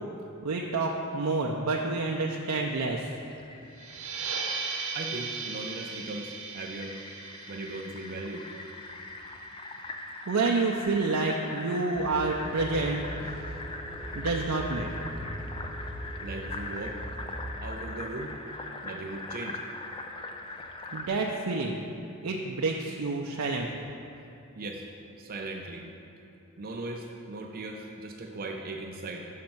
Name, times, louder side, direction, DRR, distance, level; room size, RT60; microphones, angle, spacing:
voice 1, 0.4-3.1 10.3-13.5 14.1-15.1 20.9-21.8 22.2-23.9, right 3 dB, 90° right, -1 dB, 0.5 m, -29 dB
Fill (with liquid), 3.1-21.1, left 2 dB, 25° left, 0.4 m, -41 dB
sound 1, 3.8-9.0, right 5 dB, 70° right, 0.9 m, -37 dB
voice 2, 4.9-6.9 7.5-8.5 16.2-17.0 17.6-18.3 18.8-19.6 24.6-24.9 25.2-25.9 26.6-29.3, right 2 dB, 45° right, 1 dB, 0.5 m, -38 dB
sound 2, 11.9-17.5, equal, 5° right, 1.1 m, -40 dB
6.5 x 5.2 x 5.9 m, 2.9 s
head